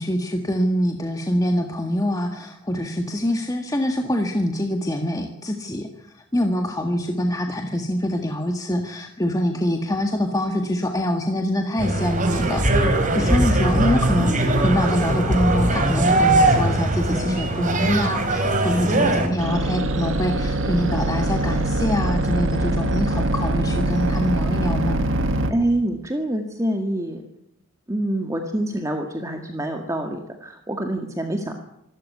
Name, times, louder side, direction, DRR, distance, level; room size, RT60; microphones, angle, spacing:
voice 1, 0.0-25.0, equal, 15° left, 4 dB, 1.7 m, -24 dB
sound 1, 11.8-19.3, right 1 dB, 35° right, 4.2 m, -20 dB
sound 2, 19.4-25.5, right 1 dB, 65° right, 2.3 m, -23 dB
voice 2, 25.5-27.2 27.9-31.5, right 1 dB, 15° right, 4 dB, 1.9 m, -26 dB
26.0 x 13.0 x 9.5 m, 0.82 s
head